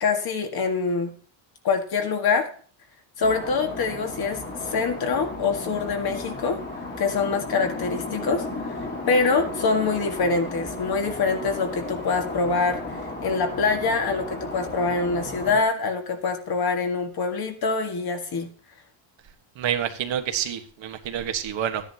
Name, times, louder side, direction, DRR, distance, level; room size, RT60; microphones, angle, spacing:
voice 1, 0.0-1.1 1.6-2.5 3.2-6.6 7.0-8.5 9.1-18.5, left 4 dB, 50° left, 5 dB, 1.9 m, -25 dB
sound 1, 3.2-15.6, left 2 dB, 20° left, 2.1 m, -34 dB
voice 2, 19.6-21.8, right 9 dB, 65° right, 5 dB, 1.5 m, -28 dB
14.0 x 10.0 x 2.9 m, 0.42 s
cardioid pair, 145°, 49 cm